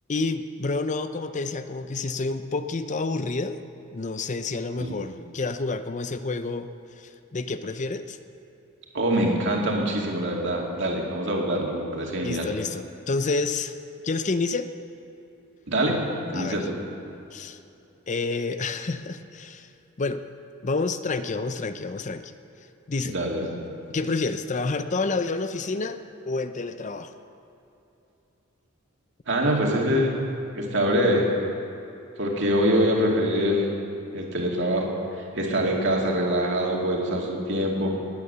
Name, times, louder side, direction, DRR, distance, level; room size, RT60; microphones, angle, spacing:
voice 1, 0.1-3.6 3.9-6.7 7.0-8.2 12.2-13.7 14.0-14.7 16.3-16.6 17.3-17.6 18.1-19.7 20.0-20.2 20.6-22.3 22.9-23.1 23.9-26.0 26.3-27.1, left 3 dB, 35° left, 10 dB, 0.5 m, -29 dB
voice 2, 8.9-12.5 15.7-16.7 23.0-23.6 29.3-30.3 30.5-31.3 32.2-33.7 34.1-38.0, equal, 60° right, -1 dB, 2.4 m, -24 dB
19.0 x 9.6 x 6.8 m, 2.9 s
head